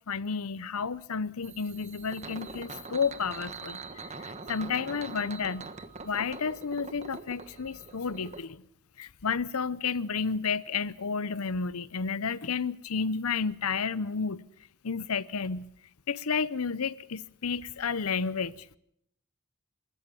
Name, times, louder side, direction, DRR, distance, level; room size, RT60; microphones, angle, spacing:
voice 1, 0.1-3.8 4.2-5.7 6.0-8.6 9.0-14.4 14.8-15.7 16.1-18.8, left 5 dB, 85° left, 0.8 m, -31 dB
sound 1, 1.4-8.4, right 4 dB, 30° right, 1.3 m, -43 dB
28.0 x 14.0 x 7.0 m
head